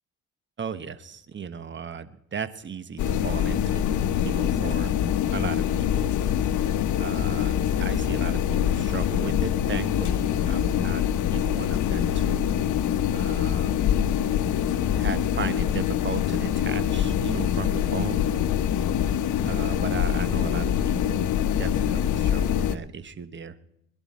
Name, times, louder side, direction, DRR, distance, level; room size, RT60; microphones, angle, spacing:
voice 1, 0.6-3.9 4.2-4.9 5.3-6.1 7.0-11.0 11.3-12.7 13.1-13.8 14.9-18.3 19.4-21.3 21.6-23.6, right 6 dB, 40° right, 13 dB, 1.1 m, -36 dB
sound 1, 3.0-22.8, left 10 dB, 75° left, 0.9 m, -24 dB
21.5 x 11.5 x 4.2 m, 0.76 s
cardioid pair, 90°, 30 cm